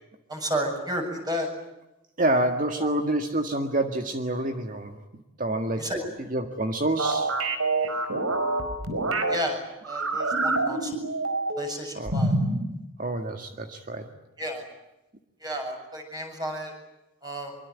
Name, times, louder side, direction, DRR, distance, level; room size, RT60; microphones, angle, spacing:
voice 1, 0.3-1.5 2.8-2.9 5.8-6.1 9.3-11.0 11.6-12.3 14.4-14.7 15.4-16.7 17.2-17.6, equal, 20° right, 3 dB, 7.5 m, -32 dB
voice 2, 2.2-5.9 6.3-7.3 11.9-12.1 13.0-14.1, right 1 dB, 40° right, 5 dB, 1.8 m, -27 dB
sound 1, 7.0-9.4 9.8-11.7 12.1-12.6, right 2 dB, 85° right, 5.0 m, -26 dB
25.0 x 24.0 x 9.5 m, 0.94 s
head